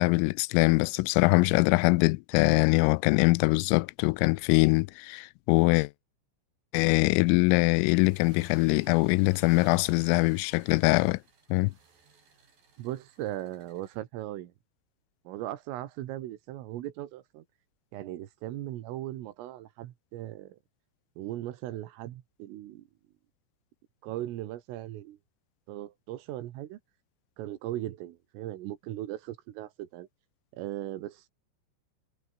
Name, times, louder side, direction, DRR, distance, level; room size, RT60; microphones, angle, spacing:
voice 1, 0.0-5.9 6.7-11.2 11.5-11.7, left 25 dB, 85° left, 3.2 m, -23 dB
worn engine revving, 7.7-14.0, right 5 dB, 45° right, 6.8 m, -57 dB
voice 2, 12.8-14.5 15.3-17.5 17.9-20.6 21.2-22.9 24.0-25.2 25.7-26.8 27.4-30.1 30.5-31.3, right 14 dB, 80° right, 4.2 m, -38 dB
omnidirectional pair, 5.8 m